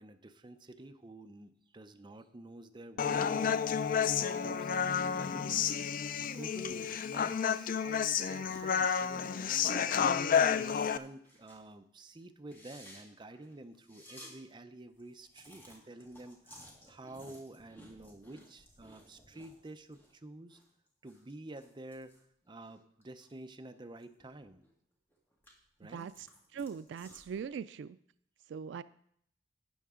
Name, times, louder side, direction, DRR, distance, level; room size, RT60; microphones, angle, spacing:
voice 1, 0.0-5.5 6.2-10.0 10.5-20.6 21.0-24.6 25.8-26.1, right 2 dB, 25° right, 7 dB, 0.6 m, -50 dB
Human voice, 3.0-11.0, left 7 dB, 50° left, 0.4 m, -30 dB
sound 1, 7.4-10.1, right 2 dB, 30° left, 5.1 m, -54 dB
sound 2, 8.5-9.4 9.7-9.9 10.3-11.7 12.0-12.1 12.4-14.3 14.7-14.8 15.0-20.1 20.4-23.4 23.7-24.7 25.1-27.4, equal, 10° left, 2.1 m, -57 dB
voice 2, 25.9-26.3 26.5-28.0 28.5-28.8, right 6 dB, 75° right, 14 dB, 0.3 m, -40 dB
12.5 x 9.0 x 3.7 m, 0.68 s
head